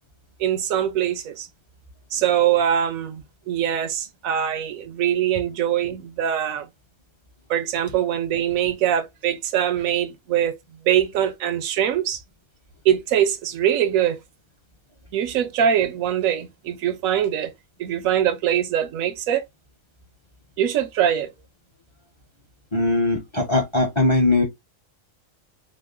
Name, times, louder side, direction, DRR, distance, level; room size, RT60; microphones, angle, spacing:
voice 1, 0.4-1.5 2.1-6.7 7.5-10.6 10.9-12.2 12.8-14.2 15.1-17.5 17.8-19.4 20.6-21.3, right 10 dB, 85° right, 1.0 m, -22 dB
voice 2, 22.7-24.4, left 2 dB, 30° left, 0.6 m, -20 dB
3.6 x 2.2 x 2.3 m
omnidirectional pair, 1.4 m